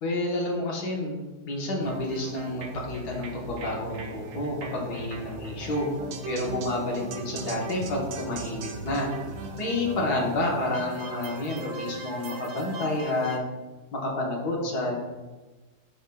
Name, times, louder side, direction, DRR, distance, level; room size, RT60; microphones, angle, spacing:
voice 1, 0.0-1.2 1.5-5.9 6.2-9.1 9.6-13.4 13.9-15.0, left 2 dB, 80° left, -2 dB, 1.7 m, -29 dB
sound 1, 1.8-13.4, right 3 dB, 90° right, 1.3 m, -39 dB
11.0 x 3.8 x 2.3 m, 1.2 s
omnidirectional pair, 1.7 m